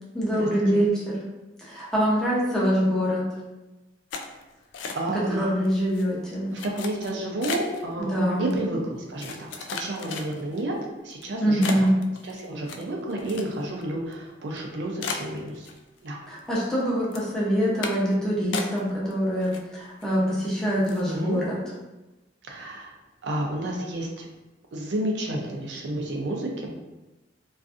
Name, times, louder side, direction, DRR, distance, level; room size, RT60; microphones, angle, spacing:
voice 1, 0.1-1.2 1.6-3.2 5.1-6.5 8.0-8.5 11.4-12.0 16.3-21.6, equal, 5° left, -7 dB, 0.6 m, -24 dB
sound 1, 4.1-5.3 5.6-6.0 6.6-7.8 8.5-8.6 9.2-10.6 11.1-11.2 11.6-13.8 14.1-14.2 14.6-14.7 15.0-16.1 16.4-16.8 17.1-17.3 17.8-18.1 18.5-19.1 19.4-20.0 20.4-20.5 20.8-21.1, left 5 dB, 80° left, 0.3 m, -35 dB
voice 2, 4.9-5.4 6.5-10.7 11.0-11.8 12.4-15.5 16.0-16.2 21.1-21.4 22.5-22.9 23.2-24.3 24.7-26.7, right 1 dB, 70° right, 0 dB, 0.5 m, -30 dB
2.5 x 2.4 x 2.4 m, 1.0 s
head